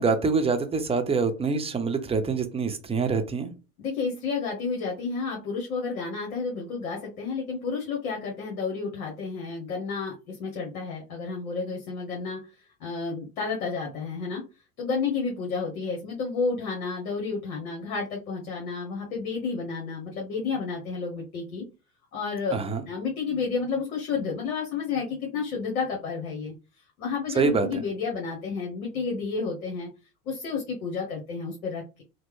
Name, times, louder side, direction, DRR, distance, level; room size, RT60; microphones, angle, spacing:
voice 1, 0.0-3.5 22.5-22.8 27.3-27.8, right 4 dB, 15° right, 0.5 m, -25 dB
voice 2, 3.8-12.4 12.8-14.4 14.8-21.6 22.1-26.5 27.0-29.9 30.2-32.0, left 5 dB, 90° left, 1.1 m, -31 dB
3.2 x 2.1 x 3.1 m
hypercardioid pair, 95°, 43 cm